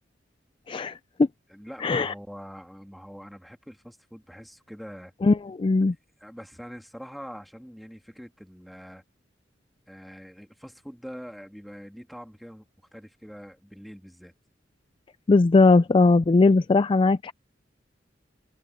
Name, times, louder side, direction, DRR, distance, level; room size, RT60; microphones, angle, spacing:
voice 1, 0.7-1.3 1.8-2.1 5.2-5.9 15.3-17.3, left 3 dB, 30° left, 0.3 m, -19 dB
voice 2, 1.5-5.1 5.8-5.9 6.2-9.0 9.9-12.6 12.9-14.3, equal, ahead, 2.8 m, -44 dB
open air
head